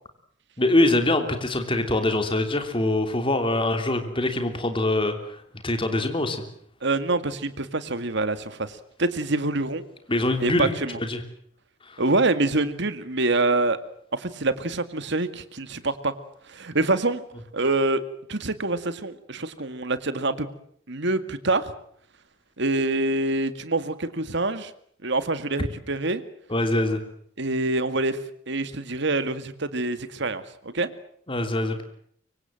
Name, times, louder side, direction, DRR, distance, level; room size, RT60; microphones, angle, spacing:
voice 1, 0.6-5.4 5.6-6.4 10.1-10.7 11.0-11.2 11.8-12.0 26.5-27.0 31.3-31.8, left 1 dB, 25° left, 6 dB, 3.1 m, -24 dB
voice 2, 6.8-9.8 10.4-11.0 12.0-13.8 14.1-16.1 16.5-17.2 17.5-18.0 18.3-20.5 20.9-21.7 22.6-24.7 25.0-26.2 27.4-28.2 28.5-30.9, right 2 dB, 60° right, 12 dB, 2.0 m, -25 dB
25.0 x 24.0 x 7.7 m, 0.66 s
head